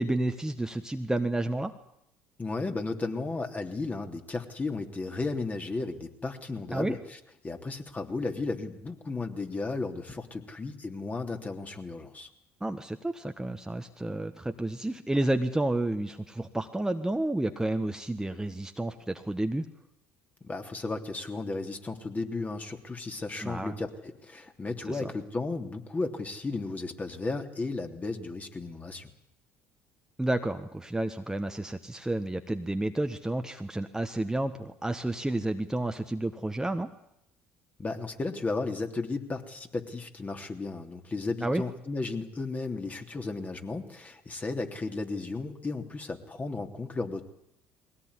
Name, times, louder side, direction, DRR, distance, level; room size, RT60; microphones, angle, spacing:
voice 1, 0.0-1.7 6.7-6.9 12.6-19.6 23.4-23.7 24.9-25.1 30.2-36.9 41.4-41.6, right 1 dB, 10° right, 6 dB, 1.5 m, -30 dB
voice 2, 2.4-7.2 7.4-12.3 20.4-29.1 37.8-47.2, left 3 dB, 25° left, 4 dB, 3.2 m, -34 dB
21.5 x 17.5 x 9.9 m, 0.79 s
hypercardioid pair, 60°, 6 cm